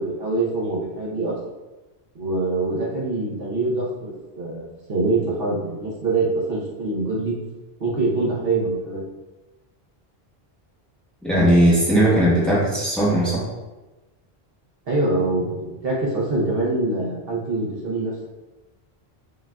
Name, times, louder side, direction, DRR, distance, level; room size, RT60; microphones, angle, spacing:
voice 1, 0.0-1.4 2.1-7.3 7.8-9.0 14.9-18.2, right 2 dB, 70° right, -4 dB, 1.0 m, -24 dB
voice 2, 11.2-13.4, right 1 dB, ahead, -8 dB, 1.0 m, -18 dB
5.2 x 2.5 x 2.2 m, 1.1 s
omnidirectional pair, 1.0 m